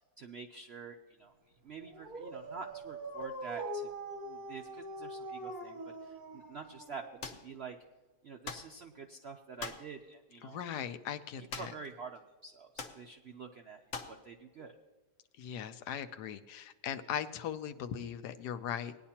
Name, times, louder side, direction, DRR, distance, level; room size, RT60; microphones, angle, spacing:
voice 1, 0.2-1.3 1.6-3.9 4.2-7.8 8.2-10.6 11.4-14.7, right 5 dB, 70° right, 4 dB, 0.6 m, -47 dB
Dog, 1.8-7.4, right 2 dB, 40° right, 0.9 m, -43 dB
sound 1, 7.2-7.5 8.4-8.7 9.6-9.9 11.5-11.9 12.2-12.3 12.8-13.0 13.9-14.2, left 5 dB, 55° left, 1.1 m, -42 dB
voice 2, 10.4-11.7 15.4-19.0, left 9 dB, 75° left, 11 dB, 1.2 m, -39 dB
18.5 x 10.0 x 2.9 m, 1.2 s
omnidirectional pair, 1.8 m